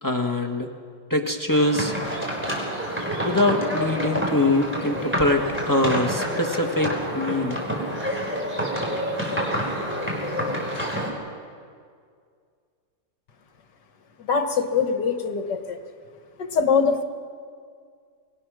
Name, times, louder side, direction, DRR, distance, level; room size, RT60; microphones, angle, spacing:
voice 1, 0.0-0.7 1.1-1.9 3.2-7.6, left 1 dB, 10° left, 3 dB, 1.3 m, -23 dB
sound 1, 1.5-11.1, equal, 5° right, 4.6 m, -28 dB
voice 2, 14.2-15.8 16.4-17.0, left 5 dB, 70° left, 6 dB, 1.8 m, -23 dB
25.0 x 21.0 x 6.3 m, 2.1 s
omnidirectional pair, 1.9 m